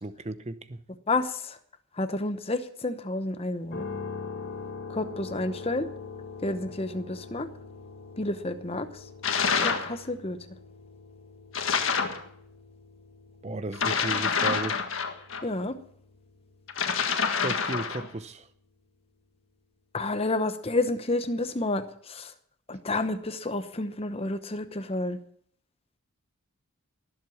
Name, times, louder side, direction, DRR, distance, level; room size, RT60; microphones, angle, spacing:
voice 1, 0.0-0.8 13.4-14.8 17.3-18.5, right 2 dB, 30° right, 12 dB, 0.8 m, -35 dB
voice 2, 1.1-1.6 2.0-3.8 4.9-5.9 6.4-7.5 8.2-9.0 9.6-10.4 15.4-15.8 19.9-22.3 22.7-25.2, left 2 dB, 25° left, 10 dB, 0.9 m, -30 dB
sound 1, 3.7-17.7, left 4 dB, 45° left, 1.6 m, -43 dB
sound 2, 9.2-9.9 11.5-12.2 13.7-15.4 16.7-18.1, left 5 dB, 65° left, 1.7 m, -27 dB
19.5 x 7.8 x 7.2 m, 0.64 s
head